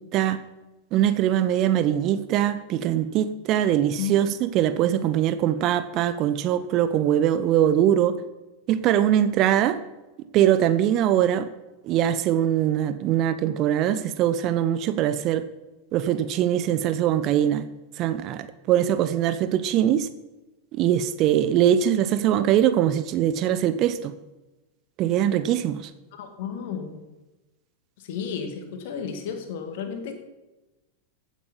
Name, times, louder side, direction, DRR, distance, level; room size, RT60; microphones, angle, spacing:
voice 1, 0.9-8.2 8.7-9.8 10.3-11.5 11.8-15.4 15.9-17.7 18.0-20.1 20.7-24.1 25.0-25.9, right 11 dB, 35° right, 0.8 m, -22 dB
voice 2, 26.1-27.0 28.0-30.1, left 7 dB, 50° left, 2.4 m, -32 dB
15.5 x 8.5 x 5.4 m
figure-of-eight pair, 90°, 0 cm